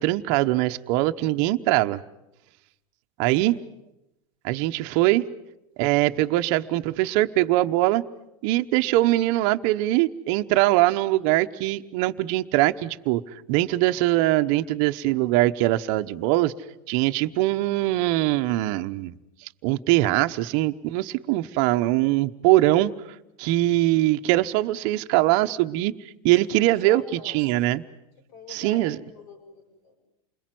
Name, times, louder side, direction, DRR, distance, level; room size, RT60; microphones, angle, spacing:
voice 1, 0.0-2.0 3.2-3.5 4.4-5.2 5.8-8.0 8.4-16.5 16.9-19.1 19.6-22.9 23.4-25.9 26.2-27.8 28.5-29.0, right 17 dB, 55° right, 8 dB, 1.1 m, -22 dB
voice 2, 26.6-27.7 28.3-28.9 29.2-30.0, left 3 dB, 60° left, 5 dB, 6.8 m, -44 dB
28.5 x 21.5 x 7.8 m, 0.89 s
supercardioid pair, 135°, 18 cm